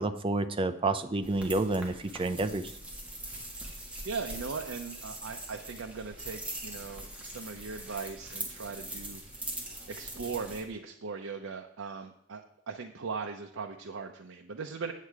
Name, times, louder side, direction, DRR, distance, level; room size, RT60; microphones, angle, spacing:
voice 1, 0.0-2.7, right 2 dB, 25° right, 10 dB, 0.6 m, -29 dB
sound 1, 1.2-10.6, right 1 dB, 5° right, 1.6 m, -42 dB
voice 2, 4.0-9.2 9.9-14.9, right 5 dB, 80° right, 3 dB, 0.6 m, -39 dB
8.4 x 7.5 x 4.7 m, 0.75 s
head